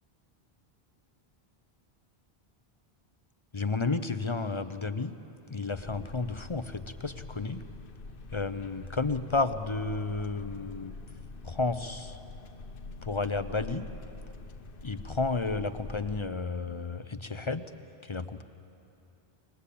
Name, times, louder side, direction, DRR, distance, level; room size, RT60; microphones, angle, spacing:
voice 1, 3.5-5.1 5.5-7.6 8.3-10.9 11.4-12.2 13.0-13.9 14.8-17.6 18.0-18.4, left 3 dB, 35° left, 11 dB, 0.6 m, -32 dB
sound 1, 5.7-16.3, left 3 dB, 60° left, 1.0 m, -45 dB
21.5 x 21.0 x 8.4 m, 2.8 s
omnidirectional pair, 1.1 m